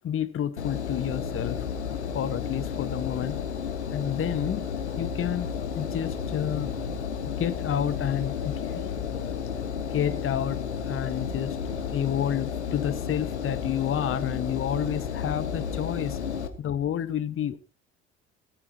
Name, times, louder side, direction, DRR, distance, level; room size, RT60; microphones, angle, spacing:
voice 1, 0.0-1.6 2.1-3.4 3.9-4.7 5.0-5.5 5.7-6.7 7.4-9.4 9.9-10.6 10.9-16.2 16.6-17.6, left 10 dB, 40° left, 1.4 m, -30 dB
Engine, 0.6-16.5, left 7 dB, 85° left, 1.6 m, -32 dB
18.5 x 14.0 x 2.9 m
figure-of-eight pair, 60°, 33 cm